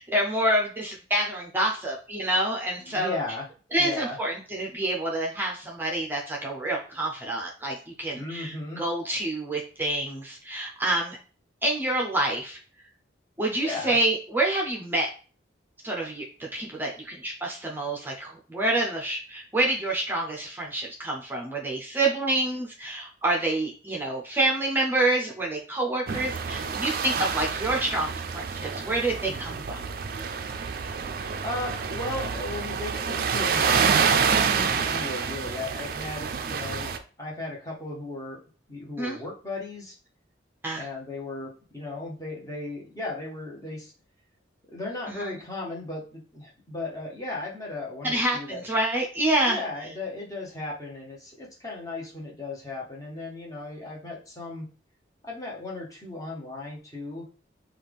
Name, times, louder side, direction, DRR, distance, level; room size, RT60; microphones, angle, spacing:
voice 1, 0.0-3.1 3.7-11.2 11.6-12.6 13.4-15.1 15.8-29.8 39.0-39.2 40.6-40.9 45.1-45.4 48.0-49.6, right 1 dB, 10° right, -1 dB, 0.6 m, -27 dB
voice 2, 2.8-3.5 3.8-4.2 8.1-8.8 13.6-14.0 29.3-29.6 31.4-38.4 38.7-39.9 40.7-43.9 44.7-48.6 49.5-54.7 55.2-57.3, left 2 dB, 20° left, -3 dB, 1.1 m, -36 dB
sound 1, 26.1-37.0, right 6 dB, 50° right, 0.4 m, -27 dB
5.6 x 2.4 x 3.5 m, 0.38 s
head